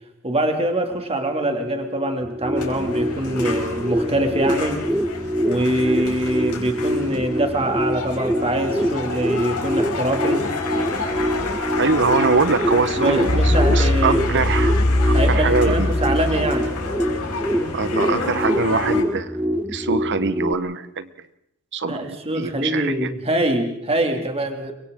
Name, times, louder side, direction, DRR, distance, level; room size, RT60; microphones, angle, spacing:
voice 1, 0.2-4.9 5.5-10.5 13.0-14.5 15.1-16.7 21.9-24.7, right 1 dB, 25° right, 4 dB, 2.6 m, -24 dB
sound 1, 1.2-13.2, left 2 dB, 75° right, 4.8 m, -37 dB
sound 2, 2.2-20.5, equal, 5° right, 0.8 m, -25 dB
sound 3, 2.6-19.0, left 2 dB, 75° left, 5.0 m, -25 dB
voice 2, 11.8-14.8 15.1-15.9 17.7-19.4 19.7-21.1 21.7-23.1, right 4 dB, 55° right, 12 dB, 1.2 m, -23 dB
30.0 x 24.0 x 3.8 m, 0.79 s
head